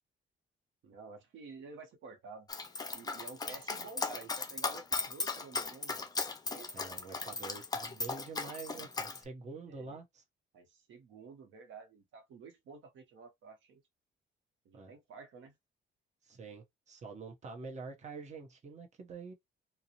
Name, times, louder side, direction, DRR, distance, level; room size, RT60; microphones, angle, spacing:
voice 1, 0.8-2.5 2.9-6.0 6.4-6.8 9.6-10.0 10.5-13.8 14.6-15.5, right 4 dB, 75° right, 0.7 m, -51 dB
Dog, 2.5-9.2, left 4 dB, 20° left, 0.4 m, -37 dB
voice 2, 6.7-10.2 14.7-14.9 16.2-19.3, right 4 dB, 35° right, 0.8 m, -46 dB
2.5 x 2.0 x 2.7 m
cardioid pair, 90°, 20 cm